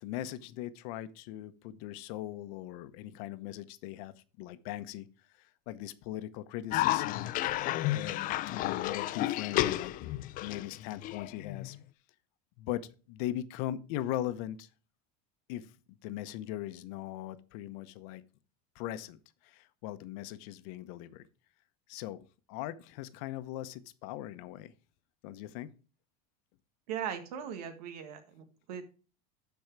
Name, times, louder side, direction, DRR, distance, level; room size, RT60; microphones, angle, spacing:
voice 1, 0.0-5.1 5.4-7.3 7.9-11.8 12.6-14.7 15.5-15.7 16.0-18.2 18.7-21.2 21.9-24.7 25.2-25.7, left 13 dB, 70° left, 12 dB, 0.9 m, -40 dB
Cough, 6.7-11.8, left 15 dB, 45° left, 0.6 m, -32 dB
voice 2, 26.9-28.8, right 8 dB, 85° right, 7 dB, 1.7 m, -39 dB
12.0 x 4.7 x 4.6 m, 0.36 s
supercardioid pair, 125°, 19 cm